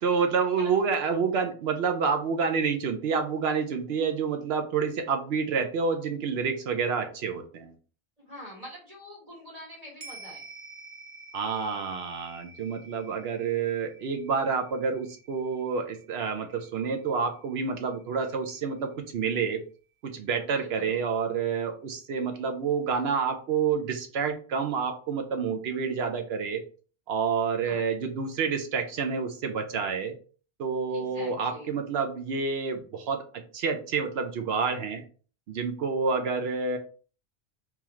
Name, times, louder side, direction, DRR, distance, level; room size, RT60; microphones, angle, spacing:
voice 1, 0.0-7.7 11.3-19.6 20.0-26.6 27.1-30.2 30.6-35.0 35.5-36.8, right 5 dB, 70° right, 5 dB, 0.8 m, -28 dB
voice 2, 8.2-10.5 20.4-21.0 27.6-27.8 30.9-31.7, equal, 35° right, -4 dB, 1.7 m, -45 dB
sound 1, 10.0-18.6 18.9-19.0, right 3 dB, 90° right, 1.2 m, -50 dB
3.8 x 2.9 x 2.9 m, 0.39 s
omnidirectional pair, 1.1 m